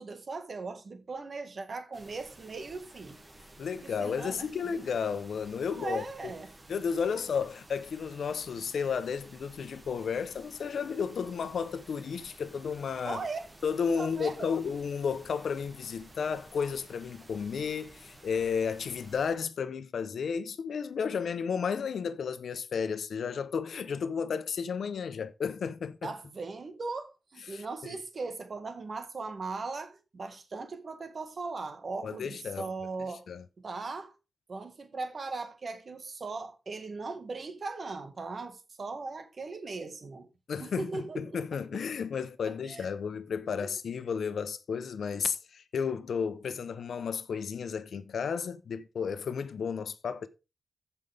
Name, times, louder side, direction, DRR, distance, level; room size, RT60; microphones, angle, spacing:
voice 1, 0.0-3.2 3.8-4.9 5.7-6.5 7.1-7.3 13.0-13.5 13.9-14.5 26.0-33.2 33.6-34.1 34.5-40.3 40.6-41.8 42.5-42.9 43.6-43.7, right 3 dB, 50° right, 1.8 m, -39 dB
sound 1, 1.9-19.4, right 1 dB, 30° right, 2.2 m, -54 dB
voice 2, 3.6-6.3 6.7-13.2 13.6-26.1 27.5-28.0 32.0-32.7 33.0-33.4 40.5-50.3, left 6 dB, 85° left, 0.9 m, -33 dB
14.5 x 5.6 x 3.6 m
wide cardioid pair, 125°, 0 cm